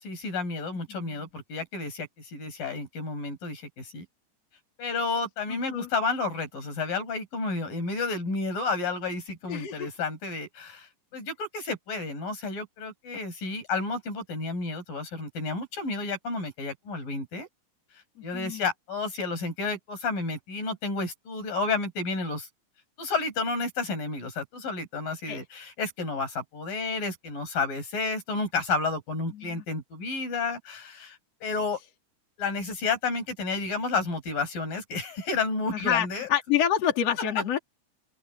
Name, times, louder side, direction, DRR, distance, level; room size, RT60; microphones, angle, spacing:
voice 1, 0.0-4.1 4.8-17.5 18.2-22.5 23.0-31.8 32.4-36.3, left 3 dB, 85° left, 8.7 m, -31 dB
voice 2, 0.9-1.3 5.5-5.9 9.5-9.9 18.3-18.6 25.3-25.4 29.3-29.6 35.7-37.6, left 9 dB, 50° left, 3.8 m, -28 dB
open air
omnidirectional pair, 3.9 m